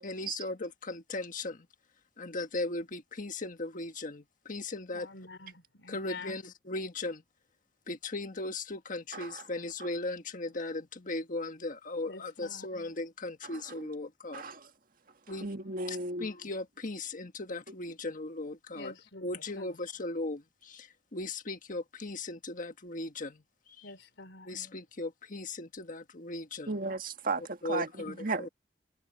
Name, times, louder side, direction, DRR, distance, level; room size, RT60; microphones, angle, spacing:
voice 1, 0.0-1.6 2.2-5.1 5.9-7.2 7.9-14.4 15.3-15.5 15.9-18.9 19.2-23.4 24.5-26.7 27.6-28.5, left 2 dB, 50° left, 1.6 m, -37 dB
voice 2, 4.9-6.5 12.1-12.7 18.7-19.7 23.8-24.5, left 3 dB, 90° left, 3.8 m, -47 dB
voice 3, 9.1-9.4 13.4-13.9 14.3-14.7 15.3-16.3 26.7-28.5, right 3 dB, 55° right, 1.6 m, -35 dB
head